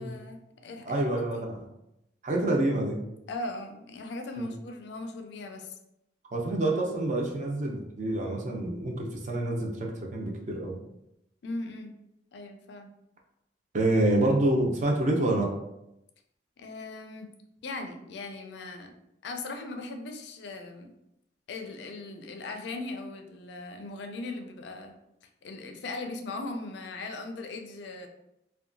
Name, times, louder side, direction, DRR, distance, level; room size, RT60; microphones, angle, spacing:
voice 1, 0.0-1.5 3.3-5.8 11.4-11.9 12.3-12.9 16.6-17.3 17.6-18.9 19.2-20.9 21.5-25.0 25.4-28.1, left 2 dB, 65° left, 5 dB, 0.4 m, -39 dB
voice 2, 0.9-1.6 2.2-3.0 6.3-10.8 13.7-15.5, right 1 dB, 40° right, 0 dB, 0.5 m, -27 dB
2.8 x 2.2 x 2.5 m, 0.84 s
head